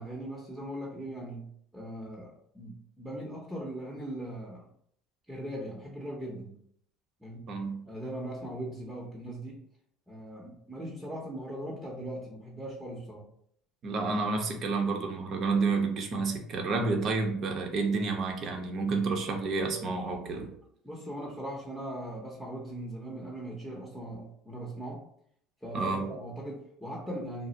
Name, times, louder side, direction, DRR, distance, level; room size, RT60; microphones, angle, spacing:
voice 1, 0.0-4.7 5.3-6.5 7.2-7.5 7.8-9.6 10.1-13.3 20.8-25.0 25.6-27.5, right 1 dB, 5° right, -4 dB, 0.8 m, -39 dB
voice 2, 7.5-7.8 13.8-20.5 25.7-26.1, right 4 dB, 50° right, 3 dB, 0.7 m, -30 dB
2.4 x 2.0 x 3.8 m, 0.67 s
supercardioid pair, 95°, 0 cm